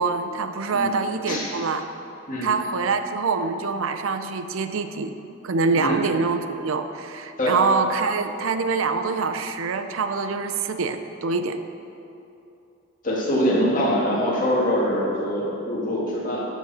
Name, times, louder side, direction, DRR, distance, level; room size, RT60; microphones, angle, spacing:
voice 1, 0.0-1.9 2.4-5.1 5.4-11.6, right 4 dB, 70° right, 9 dB, 0.5 m, -25 dB
voice 2, 13.0-16.5, equal, 40° left, -5 dB, 2.2 m, -23 dB
12.5 x 7.4 x 4.3 m, 2.8 s
head